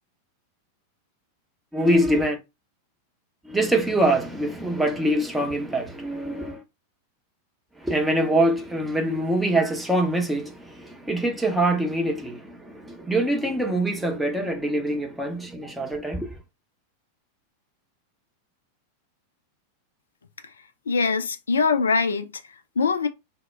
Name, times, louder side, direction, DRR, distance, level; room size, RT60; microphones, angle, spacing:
voice 1, 1.7-2.4 3.4-6.6 7.8-16.4, right 1 dB, 5° right, 0.7 m, -24 dB
voice 2, 20.9-23.1, left 4 dB, 70° left, 0.4 m, -23 dB
2.1 x 2.0 x 3.3 m
figure-of-eight pair, 90°, 0 cm